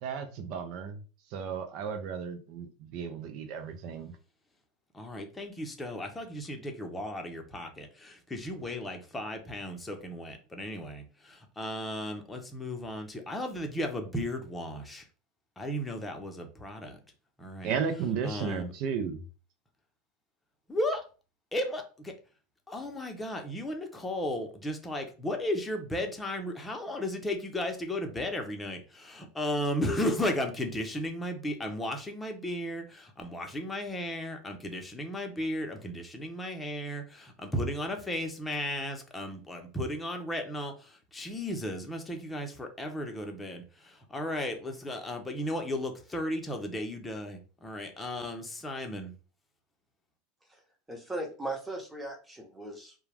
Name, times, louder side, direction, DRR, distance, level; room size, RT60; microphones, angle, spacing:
voice 1, 0.0-1.0 1.3-4.1 17.6-19.2, right 6 dB, 55° right, 7 dB, 0.6 m, -34 dB
voice 2, 4.9-15.0 15.6-17.0 17.4-17.7 18.2-18.7 20.7-21.0 21.5-22.1 22.7-49.1, left 1 dB, 10° left, 3 dB, 0.7 m, -35 dB
voice 3, 50.9-52.9, right 2 dB, 10° right, 1 dB, 1.0 m, -38 dB
2.3 x 2.2 x 3.3 m, 0.36 s
hypercardioid pair, 100°, 0 cm